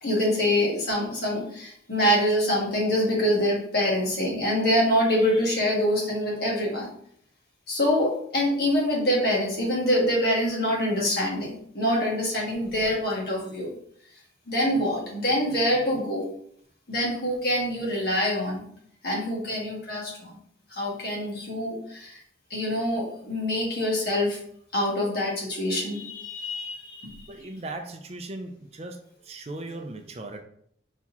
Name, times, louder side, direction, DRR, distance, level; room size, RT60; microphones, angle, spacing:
voice 1, 0.0-6.9 7.7-11.5 11.7-13.7 14.5-16.3 16.9-18.6 19.0-20.4 20.7-22.2 22.5-24.4 24.7-27.3, equal, 60° left, -4 dB, 1.7 m, -25 dB
voice 2, 27.3-30.4, right 2 dB, 35° right, 5 dB, 0.5 m, -38 dB
4.1 x 4.1 x 2.9 m, 0.65 s
head